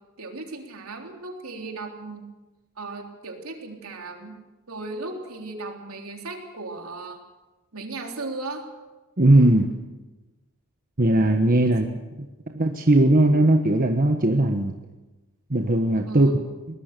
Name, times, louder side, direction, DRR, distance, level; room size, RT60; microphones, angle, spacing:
voice 1, 0.2-2.3 2.8-4.3 4.7-7.2 7.7-8.6 11.6-11.8 16.1-16.4, right 3 dB, 70° right, 2 dB, 3.7 m, -36 dB
voice 2, 9.2-9.7 11.0-11.9 12.5-14.7 15.5-16.3, right 1 dB, 40° right, 3 dB, 1.3 m, -18 dB
22.5 x 20.0 x 6.9 m, 1.1 s
head